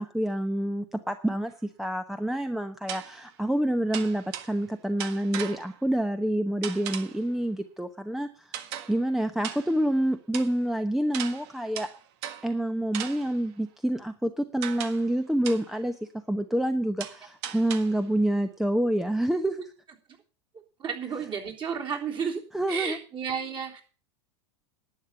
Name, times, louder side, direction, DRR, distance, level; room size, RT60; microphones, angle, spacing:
voice 1, 0.0-8.6 8.9-11.9 12.4-15.9 16.3-19.7 22.5-23.0, right 1 dB, ahead, 8 dB, 0.9 m, -27 dB
sound 1, 1.5-1.6 2.9-3.3 3.9-4.7 5.0-5.8 6.6-7.3 8.5-9.1 9.4-9.9 10.3-10.6 11.1-12.6 12.9-13.5 14.6-15.2 15.4-15.8 17.0-18.1, right 10 dB, 60° right, 1.6 m, -38 dB
voice 2, 20.8-23.8, right 6 dB, 35° right, 1 dB, 3.6 m, -32 dB
11.5 x 8.8 x 6.9 m, 0.37 s
hypercardioid pair, 100°, 15 cm